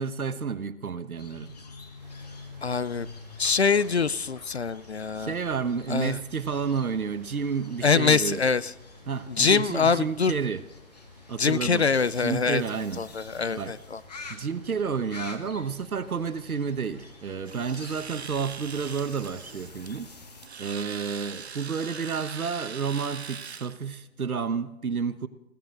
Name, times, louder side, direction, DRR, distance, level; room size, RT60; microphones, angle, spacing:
voice 1, 0.0-1.5 5.2-8.4 9.1-10.6 11.3-11.9 12.2-13.0 13.6-13.7 14.3-20.1 20.6-25.3, right 6 dB, 75° right, 12 dB, 1.3 m, -30 dB
sound 1, 1.2-20.5, left 4 dB, 30° left, 1.1 m, -47 dB
Rain, 2.0-21.7, right 3 dB, ahead, 1.1 m, -58 dB
voice 2, 2.6-3.1 3.4-5.3 5.9-6.2 7.8-8.7 9.3-10.3 11.4-12.6 13.0-14.0, left 5 dB, 50° left, 18 dB, 0.5 m, -24 dB
Domestic sounds home sounds, 17.4-23.8, right 6 dB, 50° right, 0.4 m, -41 dB
21.0 x 16.0 x 3.8 m, 0.90 s
hypercardioid pair, 165°, 43 cm